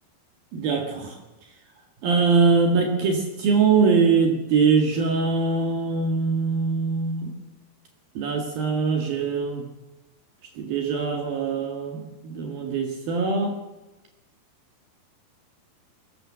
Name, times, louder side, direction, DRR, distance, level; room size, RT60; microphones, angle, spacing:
voice 1, 0.5-1.2 2.0-7.3 8.2-9.6 10.6-13.6, right 4 dB, 65° right, 3 dB, 3.6 m, -22 dB
23.0 x 18.0 x 7.6 m, 1.0 s
omnidirectional pair, 4.8 m